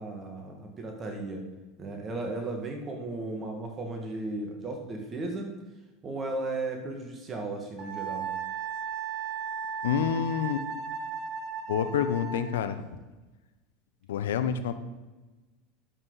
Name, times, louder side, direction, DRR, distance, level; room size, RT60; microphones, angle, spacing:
voice 1, 0.0-1.4 1.8-5.5 6.0-8.3, right 2 dB, 30° right, 2 dB, 1.9 m, -35 dB
Wind instrument woodwind instrument, 7.8-12.6, right 6 dB, 55° right, 2.3 m, -35 dB
voice 2, 9.8-10.7 11.7-12.8 14.1-14.7, left 8 dB, 85° left, 11 dB, 0.7 m, -28 dB
11.5 x 7.6 x 4.0 m, 1.2 s
hypercardioid pair, 95°, 0 cm